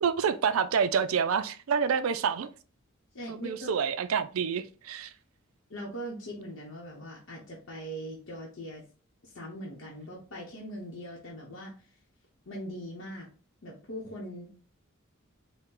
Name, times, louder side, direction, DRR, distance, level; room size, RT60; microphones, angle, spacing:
voice 1, 0.0-2.5 3.3-5.1, right 6 dB, 80° right, 0.4 m, -28 dB
voice 2, 3.1-3.8 5.7-8.8 9.2-11.9 12.5-13.3 13.6-14.6, equal, 70° left, 0.9 m, -41 dB
4.3 x 2.2 x 3.7 m
head